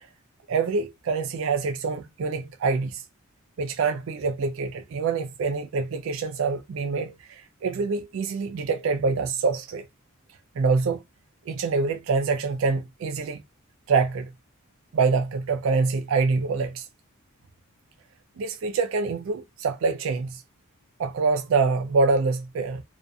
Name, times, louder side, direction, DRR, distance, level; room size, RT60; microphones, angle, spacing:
voice 1, 0.5-3.0 3.6-9.9 10.6-11.0 11.5-13.4 13.9-14.3 14.9-16.9 18.4-20.4 21.0-22.8, right 4 dB, 65° right, 0.3 m, -25 dB
2.5 x 2.4 x 2.2 m
head